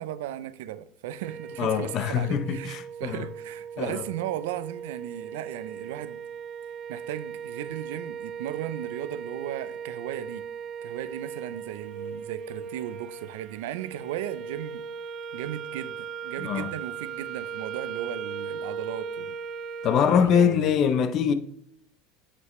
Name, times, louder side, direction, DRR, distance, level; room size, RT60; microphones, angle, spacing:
voice 1, 0.0-6.2 6.9-10.5 10.8-14.8 15.3-19.4 20.1-20.7, right 12 dB, 90° right, 0.5 m, -36 dB
sound 1, 1.2-20.2, right 6 dB, 35° right, 0.4 m, -38 dB
voice 2, 1.6-3.3 3.8-4.0 16.4-16.7 19.8-21.3, left 8 dB, 35° left, 0.5 m, -23 dB
7.6 x 6.1 x 3.1 m
cardioid pair, 170°, 0 cm